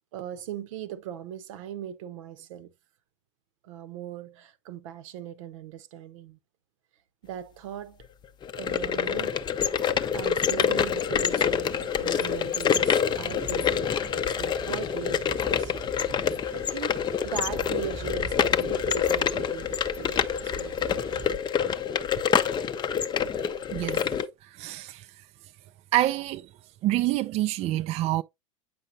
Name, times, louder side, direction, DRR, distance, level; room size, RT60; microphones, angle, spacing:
voice 1, 0.1-2.7 3.6-6.4 7.2-8.0 8.6-9.4 10.1-15.7 16.5-21.4 22.4-22.5, right 9 dB, 70° right, 0.9 m, -39 dB
sound 1, 8.4-24.3, left 8 dB, 25° left, 0.6 m, -26 dB
sound 2, 11.2-21.3, right 2 dB, 15° right, 0.8 m, -44 dB
voice 2, 24.6-25.1 25.9-26.5 26.8-28.2, right 15 dB, 40° right, 0.4 m, -26 dB
8.5 x 5.3 x 2.6 m
hypercardioid pair, 95°, 17 cm